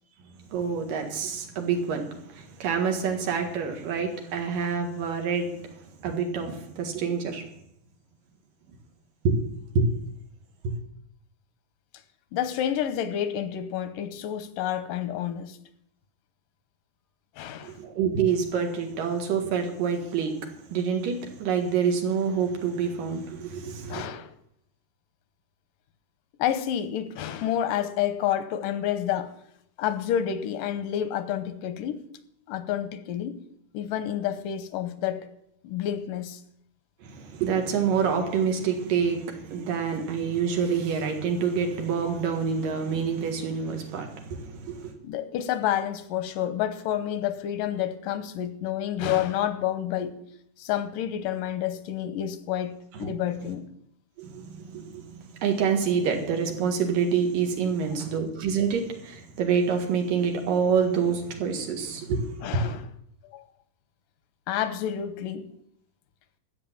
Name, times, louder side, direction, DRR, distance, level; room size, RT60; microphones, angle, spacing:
voice 1, 0.5-5.6 6.0-7.4 9.2-9.4 9.7-9.9 10.6-10.8 17.6-20.4 20.7-24.1 37.0-44.9 53.0-53.1 54.2-62.3 62.5-62.7, right 6 dB, 90° right, 3.4 m, -27 dB
voice 2, 12.3-15.6 17.4-17.8 23.9-24.3 26.4-29.3 29.8-32.0 32.5-33.4 33.7-35.3 35.6-36.4 39.9-40.1 45.0-50.2 50.6-53.6 62.4-62.8 63.3-63.5 64.5-65.5, left 10 dB, 85° left, 2.5 m, -29 dB
12.5 x 8.2 x 7.3 m
omnidirectional pair, 3.8 m